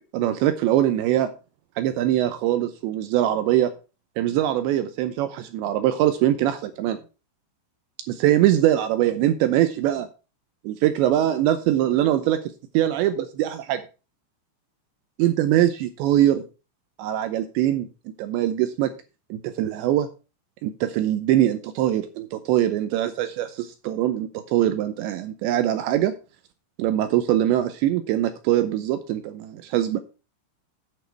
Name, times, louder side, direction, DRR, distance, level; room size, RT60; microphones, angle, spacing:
voice 1, 0.1-1.3 1.8-3.7 4.2-7.0 8.1-10.1 10.6-12.4 12.7-13.8 15.2-16.4 17.0-17.9 18.2-18.9 19.3-20.1 20.6-26.1 26.8-30.0, right 12 dB, 80° right, 9 dB, 2.6 m, -22 dB
9.1 x 8.2 x 4.6 m, 0.32 s
omnidirectional pair, 5.9 m